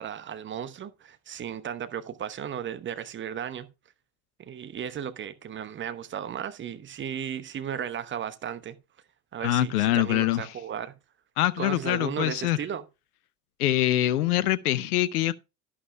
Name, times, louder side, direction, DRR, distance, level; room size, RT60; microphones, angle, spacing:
voice 1, 0.0-3.7 4.4-8.8 9.3-11.0 11.6-12.8, right 9 dB, 25° right, 1.0 m, -35 dB
voice 2, 9.4-10.5 11.4-12.6 13.6-15.3, left 14 dB, 65° left, 0.6 m, -24 dB
11.5 x 11.0 x 2.2 m
figure-of-eight pair, 75°, 49 cm